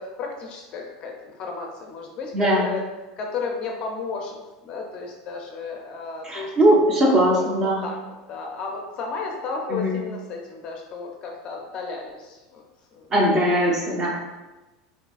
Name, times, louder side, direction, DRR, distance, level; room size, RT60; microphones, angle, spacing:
voice 1, 0.0-2.8 3.2-4.4 4.6-6.5 7.0-8.0 8.3-12.6 12.9-13.1 13.5-13.9, left 4 dB, 35° left, 1 dB, 0.5 m, -33 dB
voice 2, 2.3-2.7 6.2-7.8 9.7-10.0 13.1-14.2, equal, 20° right, -2 dB, 0.7 m, -20 dB
5.8 x 2.7 x 2.4 m, 1.1 s
supercardioid pair, 160°, 3 cm